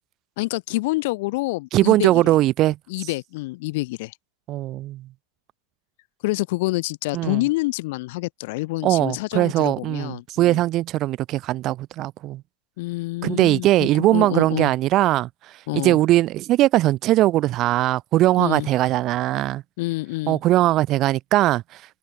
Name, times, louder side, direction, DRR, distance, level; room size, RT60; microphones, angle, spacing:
voice 1, 0.4-2.2 2.9-4.1 6.2-10.6 12.8-14.7 15.7-16.0 18.4-18.7 19.8-20.4, left 22 dB, 45° left, 3.4 m, -27 dB
voice 2, 1.7-2.8 4.5-5.1 7.1-7.4 8.8-12.4 13.2-15.3 15.7-19.6 20.3-22.0, right 15 dB, 25° right, 4.2 m, -20 dB
supercardioid pair, 175°, 0 cm